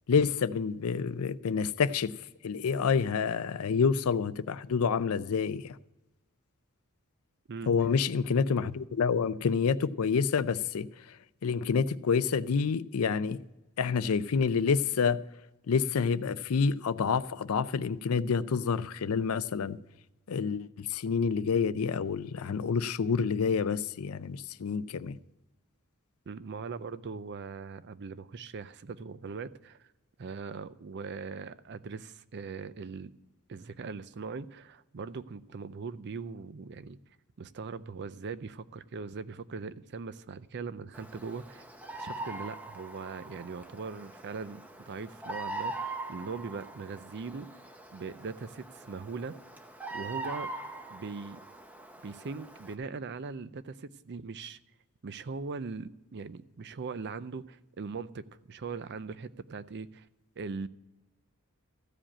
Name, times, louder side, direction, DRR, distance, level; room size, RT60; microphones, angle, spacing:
voice 1, 0.1-2.1 2.4-5.8 7.7-13.4 13.8-15.2 15.7-19.8 20.3-25.2, left 5 dB, 70° left, 0.4 m, -28 dB
voice 2, 26.3-29.8 30.2-33.1 33.5-37.0 37.4-41.6 42.0-47.5 47.9-49.3 49.9-50.5 50.9-51.4 52.0-54.6 55.0-60.1 60.4-60.7, right 4 dB, 50° right, 0.5 m, -40 dB
Bird vocalization bird call bird song, 40.9-52.7, right 2 dB, 5° right, 0.7 m, -42 dB
14.5 x 5.0 x 8.7 m
head